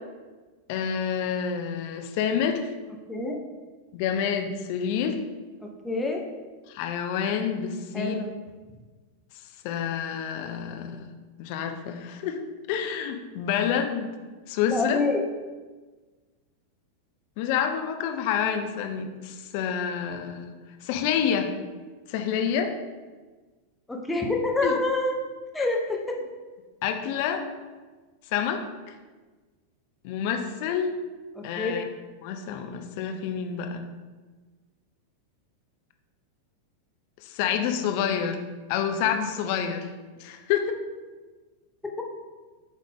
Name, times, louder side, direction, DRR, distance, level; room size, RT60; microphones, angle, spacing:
voice 1, 0.7-2.7 3.9-5.2 6.7-8.1 9.6-11.1 11.4-12.4 12.7-14.1 14.5-15.0 17.4-20.5 20.8-21.5 22.1-22.7 24.6-24.7 26.8-27.5 28.3-28.6 30.0-30.9 31.4-31.8 32.2-33.8 37.2-38.4 38.7-39.9 40.2-40.8, left 8 dB, 45° left, 5 dB, 0.6 m, -28 dB
voice 2, 5.6-6.2 7.9-8.3 14.7-15.2 23.9-25.1 25.5-26.2 31.4-31.8 41.8-42.0, left 2 dB, 10° left, 0 dB, 0.9 m, -27 dB
8.2 x 3.8 x 3.6 m, 1.3 s
figure-of-eight pair, 90°, 0 cm